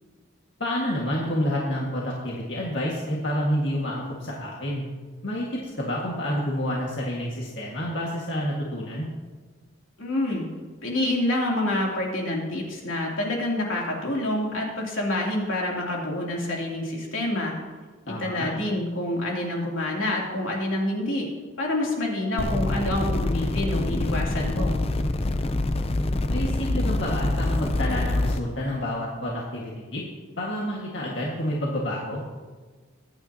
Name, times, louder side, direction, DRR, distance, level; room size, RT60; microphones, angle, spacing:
voice 1, 0.6-4.8 5.2-9.1 18.1-18.5 26.3-30.0 30.4-32.2, equal, 60° left, -4 dB, 1.8 m, -29 dB
voice 2, 10.0-10.5 10.8-17.5 18.1-21.3 21.6-24.8, left 1 dB, 80° left, -2 dB, 3.0 m, -27 dB
sound 1, 22.4-28.4, left 2 dB, 30° left, 0.5 m, -25 dB
23.5 x 9.3 x 2.9 m, 1.4 s
head